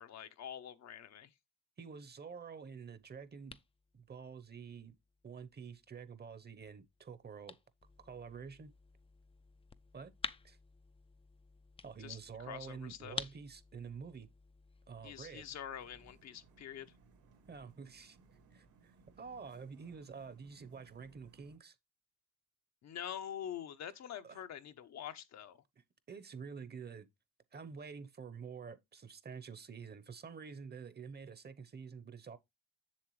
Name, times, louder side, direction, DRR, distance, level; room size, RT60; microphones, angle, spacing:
voice 1, 0.0-1.3 12.0-13.2 15.0-16.9 22.8-25.6, left 9 dB, 65° left, 0.8 m, -46 dB
voice 2, 1.8-3.6 3.9-5.0 5.2-7.5 8.0-8.7 9.9-10.1 10.4-10.6 11.8-14.3 14.9-15.5 17.5-18.2 18.5-21.7 24.2-24.4 25.8-27.1 27.5-32.4, right 6 dB, 35° right, 0.9 m, -48 dB
sound 1, 2.6-16.1, left 5 dB, 20° left, 0.4 m, -51 dB
sound 2, 15.8-21.6, right 4 dB, 80° right, 2.4 m, -65 dB
7.3 x 6.9 x 3.1 m
cardioid pair, 90°, 30 cm